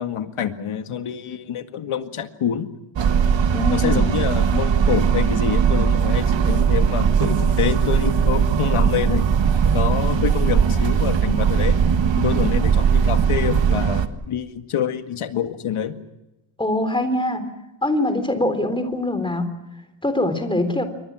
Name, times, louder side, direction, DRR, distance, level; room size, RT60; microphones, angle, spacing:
voice 1, 0.0-2.7 3.7-9.3 9.7-11.8 12.2-16.0, left 9 dB, 80° left, 8 dB, 2.0 m, -26 dB
sound 1, 3.0-14.1, right 7 dB, 60° right, 1.8 m, -19 dB
voice 2, 3.5-4.0 16.6-17.4 17.8-19.5 20.0-20.8, left 1 dB, 10° left, 9 dB, 3.5 m, -23 dB
28.0 x 24.0 x 6.2 m, 0.97 s
wide cardioid pair, 135°, 49 cm